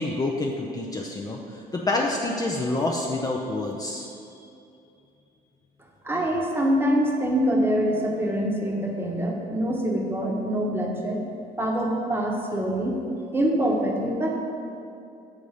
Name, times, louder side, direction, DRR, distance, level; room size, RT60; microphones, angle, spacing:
voice 1, 0.0-4.1, left 2 dB, 20° left, -1 dB, 0.5 m, -27 dB
voice 2, 6.0-11.2 11.6-13.0 13.3-14.4, equal, 15° right, -1 dB, 1.0 m, -25 dB
7.1 x 3.9 x 4.9 m, 2.6 s
cardioid pair, 110°, 17 cm